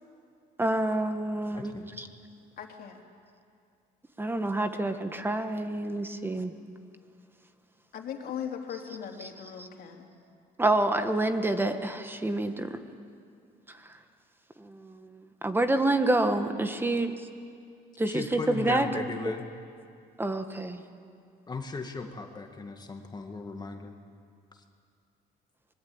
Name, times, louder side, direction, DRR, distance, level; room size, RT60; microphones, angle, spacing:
voice 1, 0.6-2.1 4.2-6.5 9.6-9.7 10.6-12.8 13.8-13.9 14.6-17.1 18.0-19.3 20.2-20.8, right 2 dB, 15° right, 8 dB, 1.6 m, -28 dB
voice 2, 1.5-2.0 18.1-19.4 21.5-23.9, left 4 dB, 25° left, 4 dB, 2.0 m, -37 dB
voice 3, 2.6-3.0 7.9-10.1, left 8 dB, 60° left, 2 dB, 3.3 m, -39 dB
25.0 x 21.5 x 8.9 m, 2.3 s
cardioid pair, 110°, 17 cm